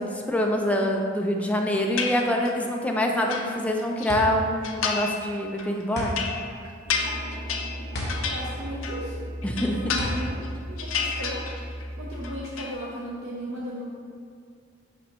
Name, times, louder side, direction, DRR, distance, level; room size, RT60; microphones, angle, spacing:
voice 1, 0.0-6.2 9.4-9.7, left 1 dB, 5° left, 1 dB, 0.4 m, -25 dB
sound 1, 2.0-2.7 3.0-4.1 4.6-5.3 5.6-9.1 9.4-10.5 10.8-11.9 12.1-12.7, left 5 dB, 70° left, 0.6 m, -31 dB
sound 2, 4.1-11.6, equal, 55° left, 1.2 m, -35 dB
sound 3, 6.8-12.4, equal, 35° left, 0.9 m, -36 dB
voice 2, 8.2-9.2 9.6-11.4 12.0-13.8, equal, 75° right, -5 dB, 0.8 m, -36 dB
6.0 x 5.5 x 3.0 m, 2.3 s
head